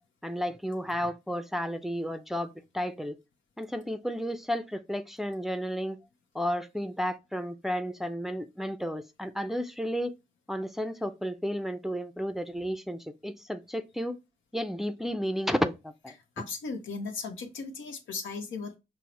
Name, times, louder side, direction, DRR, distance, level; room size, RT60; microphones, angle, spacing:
voice 1, 0.2-3.2 3.6-6.0 6.3-10.1 10.5-14.2 14.5-16.1, equal, ahead, 0.4 m, -32 dB
voice 2, 16.4-18.8, left 4 dB, 85° left, 0.7 m, -37 dB
5.5 x 2.0 x 3.0 m
supercardioid pair, 50°, 19 cm